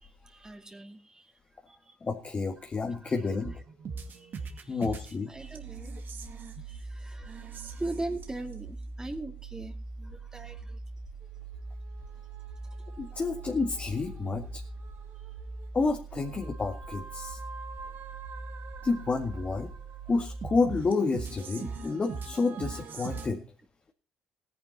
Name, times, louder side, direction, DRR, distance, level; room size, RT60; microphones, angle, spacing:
voice 1, 0.0-1.3 1.7-2.0 2.8-3.1 4.1-4.8 5.3-5.9 6.6-10.8 17.8-17.9, right 2 dB, 15° right, 5 dB, 2.5 m, -41 dB
voice 2, 2.0-3.5 4.7-5.3 13.0-14.6 15.7-17.4 18.8-19.7 20.1-23.4, left 4 dB, 35° left, 3 dB, 2.1 m, -29 dB
sound 1, 3.4-23.3, right 4 dB, 55° right, 2.2 m, -41 dB
17.5 x 10.5 x 4.1 m, 0.36 s
hypercardioid pair, 55°, 4 cm